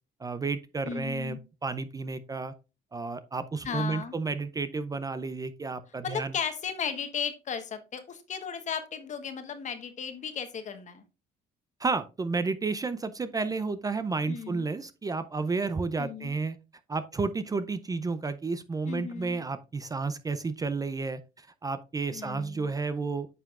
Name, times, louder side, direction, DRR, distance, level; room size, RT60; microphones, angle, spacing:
voice 1, 0.2-2.5 2.9-6.3 11.8-16.6 16.9-23.3, right 4 dB, 20° right, 12 dB, 0.5 m, -31 dB
voice 2, 0.8-1.4 3.6-4.1 6.0-11.0 14.3-14.7 16.0-16.3 18.9-19.4 22.1-22.7, left 7 dB, 45° left, 9 dB, 1.2 m, -35 dB
9.3 x 5.7 x 2.4 m, 0.29 s
cardioid pair, 110°, 17 cm